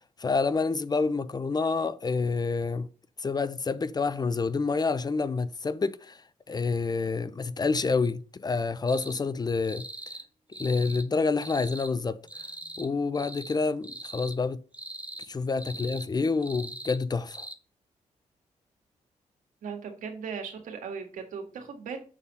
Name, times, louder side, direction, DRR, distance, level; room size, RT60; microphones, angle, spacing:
voice 1, 0.2-2.9 3.2-6.2 6.5-9.9 10.6-12.2 12.8-14.6 15.3-17.5, left 4 dB, 30° left, 0.5 m, -28 dB
sound 1, 8.9-9.2 9.6-10.3 10.5-11.1 11.4-11.9 12.3-12.9 13.1-13.6 13.8-14.4 14.7-15.3 15.6-16.1 16.4-17.0 17.3-17.6, right 1 dB, 10° right, 0.8 m, -41 dB
voice 2, 19.6-22.0, right 6 dB, 85° right, 1.8 m, -37 dB
7.3 x 4.2 x 5.3 m
cardioid pair, 75°, 13 cm